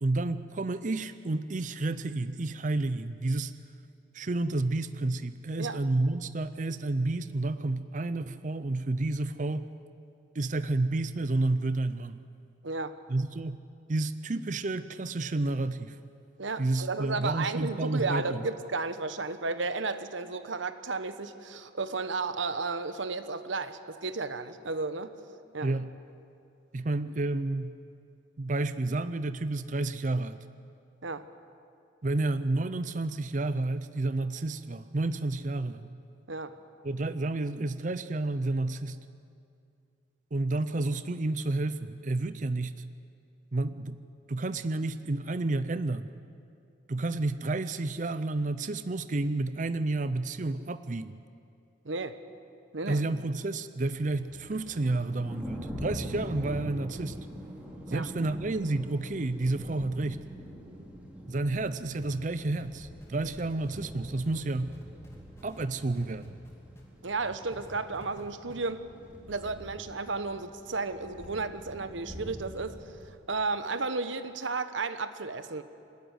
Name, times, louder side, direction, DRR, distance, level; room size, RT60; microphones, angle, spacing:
voice 1, 0.0-3.5 4.1-9.7 10.3-12.2 13.1-13.6 13.9-16.0 16.6-18.4 25.6-25.9 26.7-27.8 28.4-30.4 32.0-35.9 36.8-39.0 40.3-42.8 43.5-44.0 44.3-46.1 46.9-51.1 52.9-57.2 57.9-60.2 61.3-64.8 65.4-66.3, right 2 dB, 40° right, 12 dB, 0.5 m, -30 dB
voice 2, 12.6-13.0 16.4-25.1 25.5-25.7 31.0-31.3 36.3-36.6 51.8-52.2 52.7-53.0 57.9-58.1 67.0-68.9 69.3-72.8 73.3-75.6, right 3 dB, 85° right, 11 dB, 1.1 m, -33 dB
Thunder, 53.9-73.0, equal, 10° right, 3.3 m, -44 dB
sound 1, 61.9-66.9 67.2-68.2 68.5-68.6, left 1 dB, 15° left, 2.7 m, -50 dB
26.0 x 13.0 x 9.6 m, 2.5 s
head